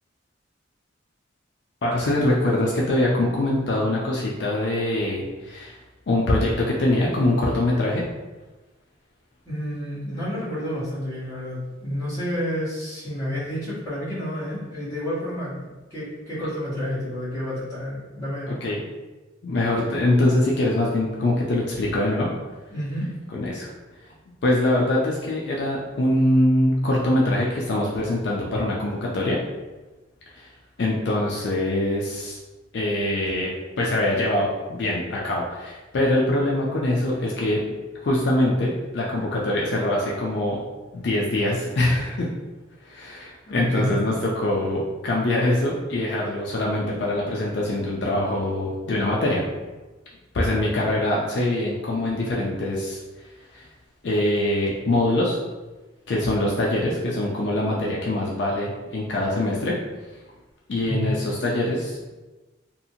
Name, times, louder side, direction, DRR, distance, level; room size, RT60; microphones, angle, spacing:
voice 1, 1.8-5.8 6.1-8.0 18.4-18.8 19.4-22.3 23.3-23.7 24.4-29.4 30.3-30.5 30.8-32.4 32.7-33.5 33.8-37.6 38.0-40.6 40.9-42.3 42.8-49.4 50.3-53.0 53.5-53.7 54.0-55.4 56.1-59.7 60.7-62.1, left 1 dB, 60° left, -3 dB, 0.4 m, -23 dB
voice 2, 9.4-15.5 15.9-18.6 22.7-23.1 43.4-43.9 60.9-61.1, equal, 15° left, -13 dB, 1.3 m, -29 dB
2.7 x 2.4 x 2.7 m, 1.2 s
head